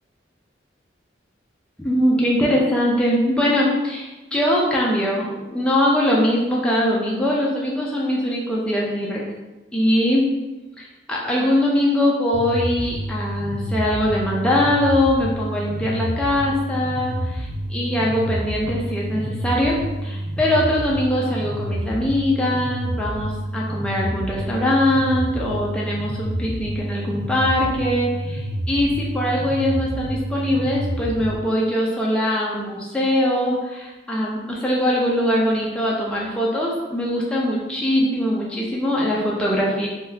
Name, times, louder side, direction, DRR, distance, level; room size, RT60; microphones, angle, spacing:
voice 1, 1.8-9.3 9.7-10.2 10.8-39.9, left 1 dB, 5° left, -5 dB, 0.4 m, -22 dB
sound 1, 12.3-31.4, right 1 dB, 65° right, 0.4 m, -28 dB
3.7 x 2.3 x 2.7 m, 1.1 s
head